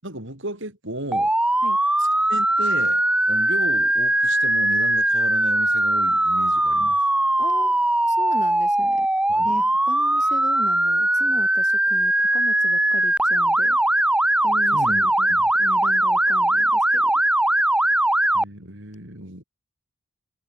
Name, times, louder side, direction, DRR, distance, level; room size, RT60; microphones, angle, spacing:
voice 1, 0.0-1.3 2.0-3.0 3.3-7.0 9.3-9.5 14.7-15.5 18.3-19.4, right 1 dB, 55° right, 7.0 m, -34 dB
Motor vehicle (road) / Siren, 1.1-18.4, right 1 dB, 5° right, 0.6 m, -20 dB
voice 2, 7.4-9.1 9.4-13.8 14.4-15.3 15.6-17.1, left 1 dB, 35° left, 2.6 m, -37 dB
head